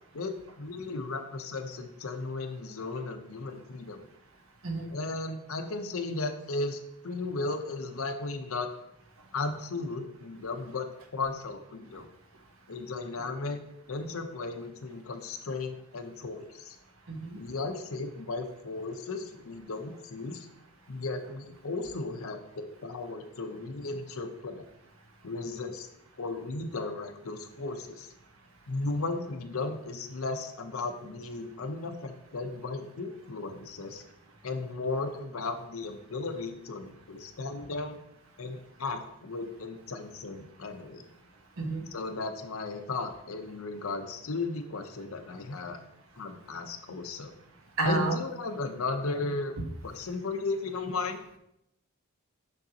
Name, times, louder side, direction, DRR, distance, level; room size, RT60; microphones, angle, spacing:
voice 1, 0.1-4.0 4.9-8.7 9.3-12.1 12.7-13.6 13.9-16.8 17.4-20.5 20.9-24.6 25.2-25.9 26.2-28.1 28.7-34.0 34.4-38.0 38.4-41.1 41.9-45.8 46.2-47.3 47.8-49.5 49.8-51.2, left 3 dB, 70° left, 7 dB, 0.7 m, -35 dB
voice 2, 17.1-17.4 41.6-41.8 47.8-48.2, right 3 dB, 70° right, 3 dB, 1.0 m, -29 dB
6.5 x 6.1 x 2.8 m, 0.79 s
head